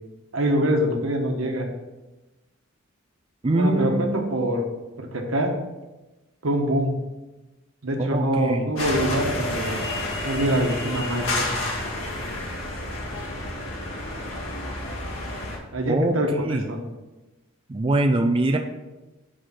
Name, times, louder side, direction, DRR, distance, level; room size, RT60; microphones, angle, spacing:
voice 1, 0.3-1.7 3.5-4.6 5.0-5.5 6.4-6.9 7.8-9.8 10.2-11.5 15.7-16.8, right 1 dB, 80° right, 3 dB, 1.2 m, -24 dB
voice 2, 3.4-4.4 8.0-8.7 15.9-16.1 16.4-16.7 17.7-18.6, right 2 dB, 25° right, 3 dB, 0.4 m, -23 dB
sound 1, 8.8-15.6, left 1 dB, 65° left, 2.3 m, -30 dB
6.4 x 4.8 x 5.9 m, 1.1 s
head